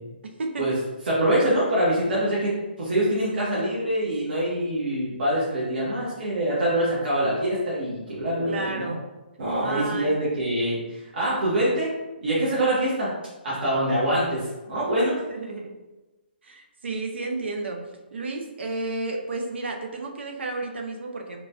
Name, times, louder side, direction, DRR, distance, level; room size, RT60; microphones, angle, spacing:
voice 1, 0.2-0.8 8.5-9.0 9.6-10.2 15.3-15.8 16.4-17.8 18.1-21.4, right 3 dB, 85° right, 2 dB, 0.5 m, -32 dB
voice 2, 1.1-9.0 9.4-11.9 12.2-13.1 13.4-15.2, right 1 dB, 60° right, -8 dB, 0.9 m, -24 dB
3.0 x 2.2 x 2.6 m, 1.1 s
hypercardioid pair, 160°, 6 cm